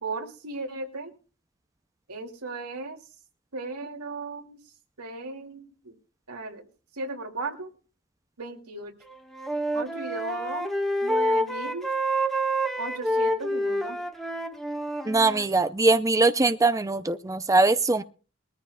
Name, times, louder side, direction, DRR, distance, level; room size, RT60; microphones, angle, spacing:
voice 1, 0.0-1.1 2.1-3.0 3.5-4.6 5.0-5.9 6.3-6.7 6.9-7.7 8.4-8.9 9.7-10.7 11.0-11.9 12.8-14.0, right 3 dB, 85° right, 3 dB, 2.6 m, -36 dB
Wind instrument woodwind instrument, 9.0-15.5, right 1 dB, ahead, 1.4 m, -28 dB
voice 2, 15.1-18.0, right 3 dB, 15° right, 10 dB, 0.5 m, -22 dB
22.0 x 14.0 x 2.3 m, 0.36 s
head